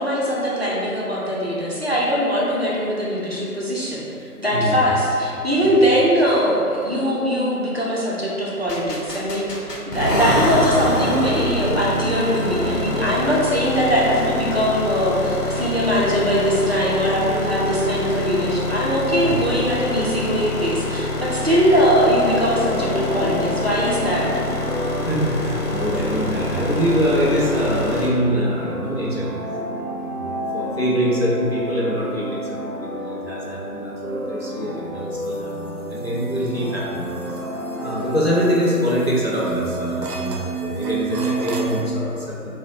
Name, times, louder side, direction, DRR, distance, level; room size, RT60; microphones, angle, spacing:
voice 1, 0.0-4.0 4.4-24.3, equal, 45° right, -6 dB, 0.5 m, -21 dB
voice 2, 4.5-4.8 5.6-5.8 19.2-19.5 25.0-29.3 30.1-37.4 37.8-42.6, equal, 45° left, -7 dB, 0.4 m, -24 dB
sound 1, 8.7-28.1, left 1 dB, 80° left, 0.8 m, -26 dB
sound 2, 21.9-39.2, equal, 15° right, 0.8 m, -31 dB
sound 3, 36.5-36.6 37.2-41.8, right 5 dB, 90° right, 0.6 m, -29 dB
2.7 x 2.0 x 4.0 m, 2.6 s
figure-of-eight pair, 150°, 47 cm